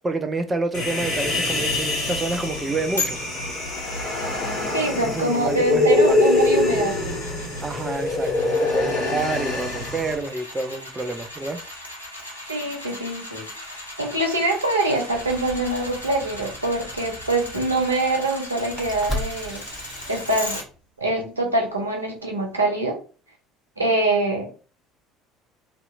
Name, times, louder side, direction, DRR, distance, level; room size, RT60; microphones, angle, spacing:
voice 1, 0.0-3.2 5.0-6.2 7.6-11.6, right 3 dB, 20° right, 0.3 m, -28 dB
Human voice, 0.7-10.1, left 2 dB, 55° left, 1.1 m, -24 dB
sound 1, 3.0-20.6 21.1-21.2, left 2 dB, 85° left, 0.5 m, -38 dB
voice 2, 4.7-7.0 12.5-13.5 14.0-19.6 20.1-20.6 21.0-23.0 23.8-24.5, right 2 dB, 85° right, 0.6 m, -24 dB
sound 2, 15.1-20.8, equal, 10° left, 1.0 m, -37 dB
2.7 x 2.3 x 2.3 m
figure-of-eight pair, 60°, 0 cm